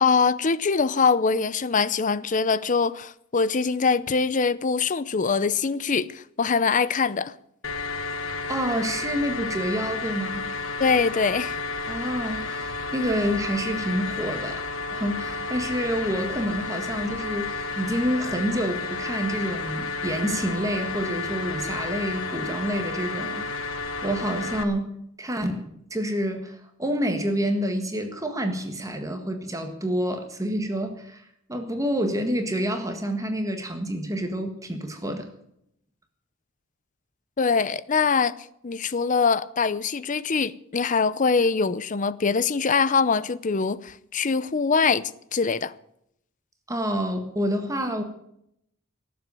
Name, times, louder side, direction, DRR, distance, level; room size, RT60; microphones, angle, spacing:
voice 1, 0.0-7.3 10.8-11.6 37.4-38.4 38.6-45.7, left 5 dB, 40° left, 0.6 m, -23 dB
sound 1, 7.6-24.6, left 3 dB, 80° left, 1.3 m, -31 dB
voice 2, 8.5-10.5 11.9-14.6 14.9-23.4 23.7-24.9 25.2-25.6 25.9-35.3 46.7-48.0, equal, 15° right, 1.6 m, -28 dB
18.5 x 7.7 x 9.3 m
head